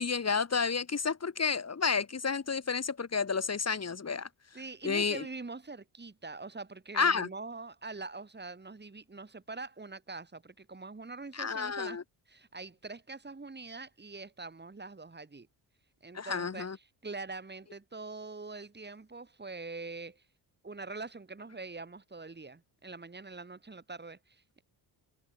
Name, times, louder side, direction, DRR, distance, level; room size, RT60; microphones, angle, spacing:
voice 1, 0.0-4.3 4.8-5.2 6.9-7.3 11.3-12.0 16.1-16.8, left 5 dB, 35° left, 3.6 m, -30 dB
voice 2, 4.5-12.0 12.3-15.5 16.0-20.2 20.6-24.6, right 3 dB, 25° right, 7.8 m, -44 dB
cardioid pair, 110°, 44 cm